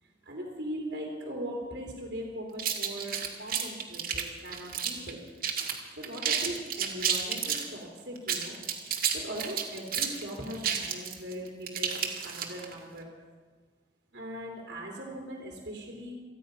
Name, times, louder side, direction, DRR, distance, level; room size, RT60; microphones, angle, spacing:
voice 1, 0.0-5.2 5.9-8.6 8.9-13.1 14.1-16.1, equal, 70° right, -2 dB, 3.2 m, -40 dB
sound 1, 2.6-5.1 5.4-5.8 6.0-7.7 8.2-12.7, right 8 dB, 55° right, 1.9 m, -31 dB
27.5 x 9.5 x 5.4 m, 1.5 s
head